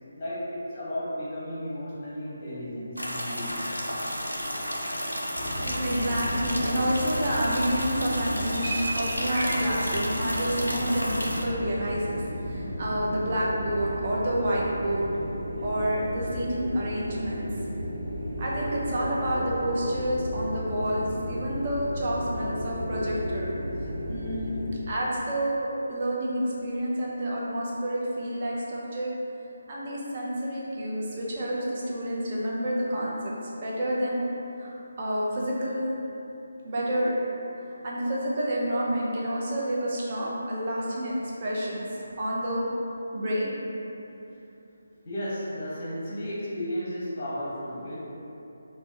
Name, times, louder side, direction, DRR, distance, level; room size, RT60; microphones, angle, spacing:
voice 1, 0.1-3.8 45.0-48.0, equal, 30° left, -8 dB, 0.8 m, -34 dB
sound 1, 3.0-11.4, equal, 85° left, 0.4 m, -32 dB
sound 2, 5.3-24.7, equal, 75° right, 0.7 m, -34 dB
voice 2, 5.5-15.1 15.6-17.5 18.4-23.5 24.1-29.1 29.7-34.2 34.6-35.9 36.6-37.2 37.8-42.7 43.1-43.6, equal, 35° right, -5 dB, 0.5 m, -29 dB
3.3 x 2.0 x 2.7 m, 2.9 s
figure-of-eight pair, 150°, 0 cm